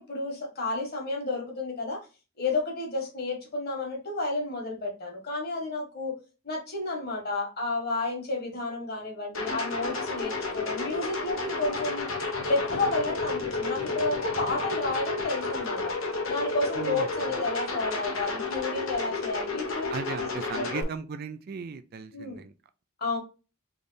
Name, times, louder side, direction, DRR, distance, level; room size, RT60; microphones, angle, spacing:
voice 1, 0.0-2.0 2.4-6.2 6.4-12.1 12.5-15.9 16.3-19.9 20.6-20.8 22.1-22.4 23.0-23.2, left 2 dB, 45° left, 1.5 m, -31 dB
sound 1, 9.3-20.8, left 3 dB, 65° left, 1.0 m, -31 dB
voice 2, 16.8-17.4 19.9-22.5, right 5 dB, 45° right, 0.3 m, -37 dB
3.5 x 3.2 x 3.9 m
head